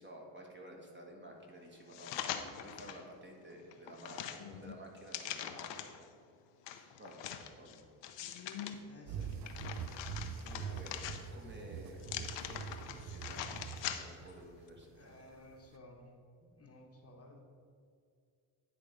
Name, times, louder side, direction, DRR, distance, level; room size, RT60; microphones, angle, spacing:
voice 1, 0.0-5.9 6.7-8.1 8.6-8.9 9.2-9.3 10.4-11.0 11.3-13.6 13.9-15.2, right 1 dB, 25° right, 0 dB, 1.4 m, -53 dB
sound 1, 1.9-3.0 3.5-6.0 6.7-8.7 9.2-11.5 12.0-14.3 14.7-14.8, left 10 dB, 75° left, 0.7 m, -43 dB
voice 2, 8.9-9.4 10.6-10.8 14.9-16.0 16.4-17.4, left 2 dB, 35° left, 1 dB, 1.0 m, -56 dB
sound 2, 9.1-15.8, right 6 dB, 45° right, 0.4 m, -44 dB
9.8 x 3.4 x 5.0 m, 2.3 s
cardioid pair, 85°, 43 cm